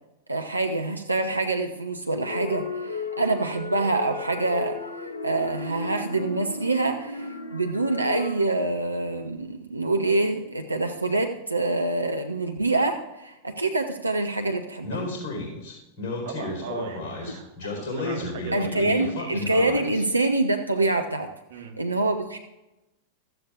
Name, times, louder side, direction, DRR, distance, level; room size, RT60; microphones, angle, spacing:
voice 1, 0.3-4.8 5.2-15.0 17.6-17.7 18.5-21.3 21.8-22.4, right 2 dB, 85° right, 4 dB, 0.7 m, -26 dB
sound 1, 2.2-8.4, left 3 dB, 75° left, 0.9 m, -35 dB
Speech, 14.8-20.0, left 2 dB, 45° left, 4.2 m, -32 dB
voice 2, 16.2-17.5 17.8-19.2 21.5-21.8, right 6 dB, 60° right, 3 dB, 1.5 m, -38 dB
16.0 x 13.0 x 2.5 m, 0.97 s
figure-of-eight pair, 90°, 0 cm